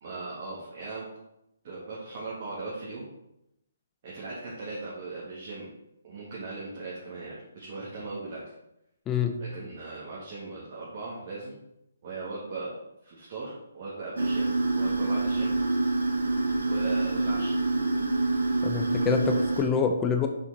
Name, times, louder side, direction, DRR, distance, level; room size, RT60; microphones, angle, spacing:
voice 1, 0.0-1.0 1.6-3.1 4.0-5.7 6.0-8.4 9.4-11.6 12.0-12.7 13.0-15.6 16.7-17.5, right 3 dB, 45° right, -7 dB, 1.8 m, -38 dB
voice 2, 9.1-9.4 18.6-20.3, left 6 dB, 15° left, 5 dB, 0.5 m, -26 dB
sound 1, 14.2-19.6, right 2 dB, 75° right, 1.4 m, -26 dB
5.9 x 4.1 x 4.1 m, 0.84 s
hypercardioid pair, 145°, 0 cm